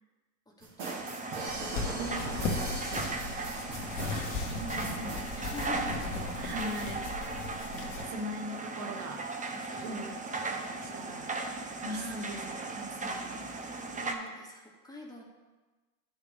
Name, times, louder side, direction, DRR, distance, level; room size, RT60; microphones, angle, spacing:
voice 1, 0.5-3.1 3.4-3.8 5.3-6.1 9.7-10.1 10.4-11.2 11.8-12.4 13.9-15.2, left 1 dB, 10° left, -2 dB, 1.9 m, -47 dB
sound 1, 0.6-5.3, right 3 dB, 55° right, 2.5 m, -40 dB
sound 2, 0.8-14.1, right 3 dB, 20° right, 1.0 m, -37 dB
sound 3, 1.5-8.0, left 3 dB, 75° left, 1.8 m, -37 dB
voice 2, 2.7-3.2 4.1-5.3 5.6-7.5 7.8-9.2 9.5-13.6, equal, 70° right, 2 dB, 1.6 m, -42 dB
11.5 x 5.9 x 3.4 m, 1.2 s
hypercardioid pair, 90°, 41 cm